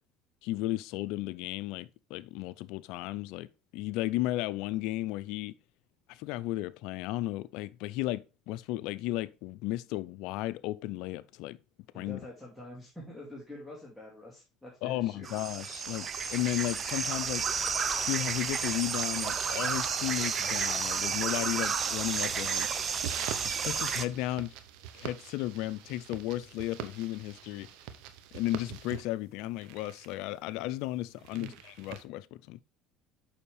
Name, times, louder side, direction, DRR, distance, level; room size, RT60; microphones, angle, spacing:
voice 1, 0.4-3.5 3.7-5.6 6.1-11.6 11.9-12.2 14.8-17.5 17.9-22.7 23.4-24.5 24.9-27.7 28.3-32.6, left 16 dB, 75° left, 0.4 m, -34 dB
voice 2, 11.9-15.3 31.1-31.6, left 1 dB, 5° right, 2.4 m, -46 dB
sound 1, 15.2-24.0, right 6 dB, 35° right, 0.6 m, -31 dB
sound 2, 17.4-32.0, right 10 dB, 75° right, 0.8 m, -47 dB
7.0 x 5.6 x 3.3 m
supercardioid pair, 105°, 0 cm